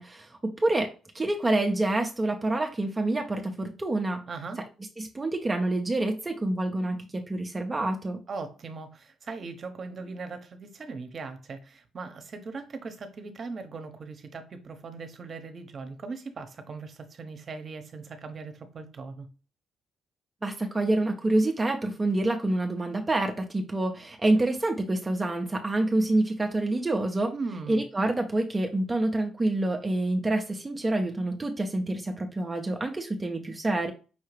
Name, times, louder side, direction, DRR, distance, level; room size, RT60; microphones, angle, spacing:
voice 1, 0.0-4.2 5.0-8.2 20.4-27.3 27.7-33.9, right 2 dB, 20° right, 0.7 m, -27 dB
voice 2, 4.3-4.6 8.3-19.3 27.3-27.8, right 4 dB, 45° right, 0.9 m, -39 dB
5.6 x 2.8 x 3.1 m
cardioid pair, 90°, 0 cm